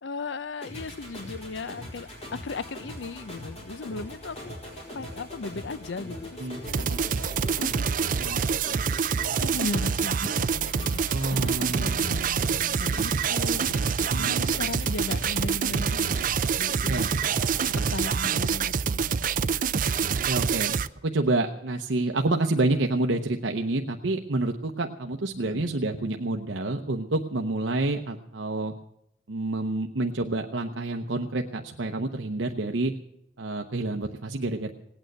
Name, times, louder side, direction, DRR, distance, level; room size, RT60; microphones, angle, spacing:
voice 1, 0.0-4.6 4.9-6.4 6.7-7.3 7.5-8.5 9.3-17.1 17.8-19.7 25.5-25.7, left 4 dB, 70° left, 17 dB, 0.6 m, -37 dB
sound 1, 0.6-17.7, left 1 dB, 35° left, 4.7 m, -41 dB
voice 2, 6.4-7.0 11.1-12.0 14.1-14.5 16.9-17.1 20.2-20.7 21.0-28.7 29.3-32.9 33.4-34.7, right 2 dB, 80° right, 4 dB, 0.8 m, -28 dB
sound 2, 6.7-20.9, right 6 dB, 45° right, 0.5 m, -26 dB
18.0 x 9.0 x 7.8 m, 0.81 s
head